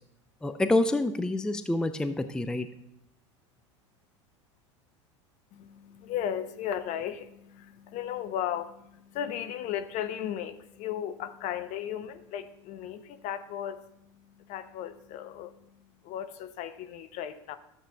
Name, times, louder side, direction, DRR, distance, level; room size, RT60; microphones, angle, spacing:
voice 1, 0.4-2.7, left 2 dB, 5° left, 10 dB, 0.4 m, -27 dB
voice 2, 5.5-17.6, left 10 dB, 50° left, 11 dB, 0.7 m, -36 dB
12.5 x 7.4 x 2.3 m, 0.82 s
hypercardioid pair, 85°, 16 cm